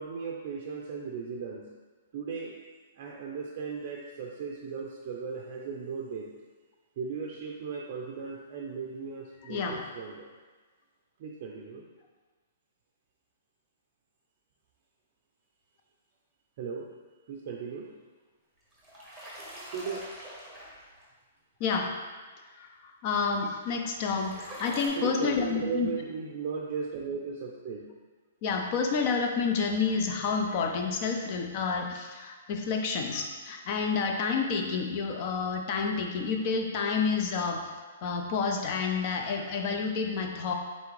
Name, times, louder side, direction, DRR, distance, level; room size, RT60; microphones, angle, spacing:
voice 1, 0.0-1.7 2.1-2.6 3.0-6.3 7.0-10.3 11.2-11.8 16.6-16.9 17.3-17.9 19.6-20.1 25.0-27.9, right 5 dB, 45° right, -1 dB, 0.4 m, -37 dB
voice 2, 9.4-9.8 21.6-21.9 22.6-25.9 28.4-37.7 38.0-40.5, left 5 dB, 40° left, 3 dB, 0.5 m, -29 dB
sound 1, 18.6-21.0 23.7-24.9, equal, ahead, 1.0 m, -44 dB
4.1 x 3.4 x 3.1 m, 1.4 s
hypercardioid pair, 150°, 0 cm